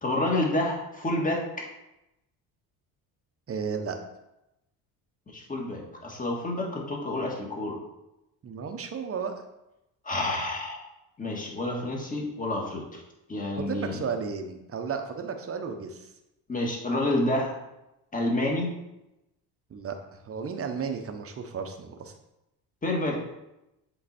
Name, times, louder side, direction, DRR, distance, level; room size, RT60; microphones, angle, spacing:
voice 1, 0.0-1.7 5.3-7.8 10.0-10.8 11.2-13.0 13.3-14.0 16.5-17.6 18.1-18.7 22.8-23.2, left 1 dB, 20° left, -1 dB, 1.9 m, -29 dB
voice 2, 3.5-4.0 8.4-9.3 13.6-16.1 19.7-22.1, right 6 dB, 35° right, 5 dB, 1.0 m, -33 dB
7.7 x 3.9 x 4.4 m, 0.91 s
cardioid pair, 100°, 40 cm